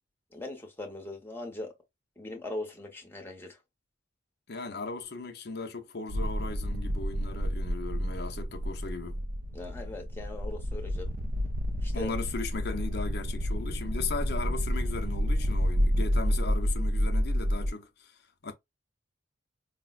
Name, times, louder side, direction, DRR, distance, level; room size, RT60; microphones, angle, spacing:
voice 1, 0.3-1.7 2.2-3.6 9.5-11.1 11.8-12.1, left 2 dB, 10° left, 0.8 m, -40 dB
voice 2, 4.5-9.2 11.9-18.5, left 4 dB, 55° left, 0.6 m, -37 dB
sound 1, 6.1-17.7, equal, 40° right, 0.4 m, -30 dB
4.8 x 2.0 x 2.3 m
head